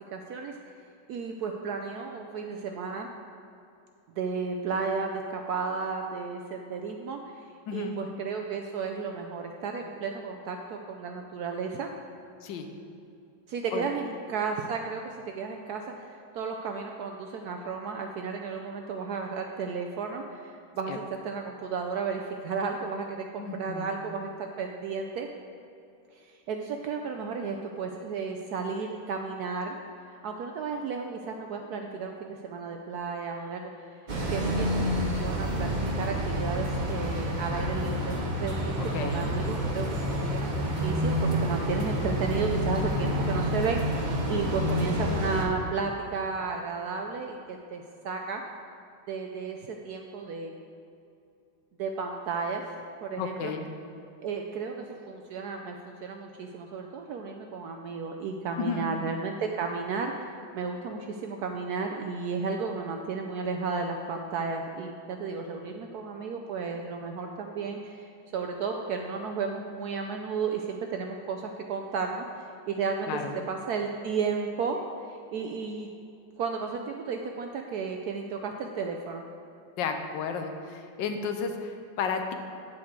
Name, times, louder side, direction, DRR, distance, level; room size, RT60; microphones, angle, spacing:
voice 1, 0.1-0.6 1.1-3.1 4.2-7.2 7.7-11.9 13.5-24.3 24.6-25.3 26.1-29.8 30.2-33.9 34.3-48.4 49.1-50.6 51.8-52.6 53.0-53.5 54.2-73.1 73.5-74.8 75.1-75.9 76.4-79.2, right 5 dB, 70° right, 3 dB, 0.9 m, -33 dB
voice 2, 23.4-23.9 38.8-39.2 44.8-44.9 53.2-53.7 58.6-58.9 73.1-73.3 79.8-82.3, left 5 dB, 75° left, 5 dB, 1.3 m, -33 dB
sound 1, 34.1-45.4, equal, 40° right, 0.6 m, -28 dB
8.7 x 7.4 x 4.5 m, 2.6 s
omnidirectional pair, 2.1 m